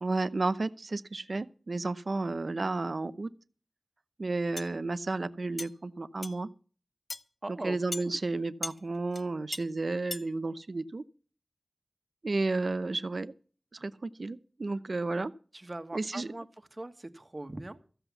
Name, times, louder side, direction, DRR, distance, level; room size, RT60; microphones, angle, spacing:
voice 1, 0.0-3.3 4.2-6.5 7.6-11.0 12.2-13.3 13.7-15.3 15.9-16.3, right 3 dB, 70° right, 14 dB, 0.7 m, -32 dB
sound 1, 4.6-4.7 5.6-5.7 6.2-6.4 7.1-7.2 7.9-8.1 8.6-8.8 9.1-9.2 9.5-9.6 10.1-10.3, left 2 dB, 50° left, 0.8 m, -37 dB
voice 2, 7.4-8.2 15.5-17.8, right 2 dB, 40° right, 9 dB, 1.4 m, -41 dB
14.5 x 8.0 x 7.1 m, 0.41 s
wide cardioid pair, 55°, 0 cm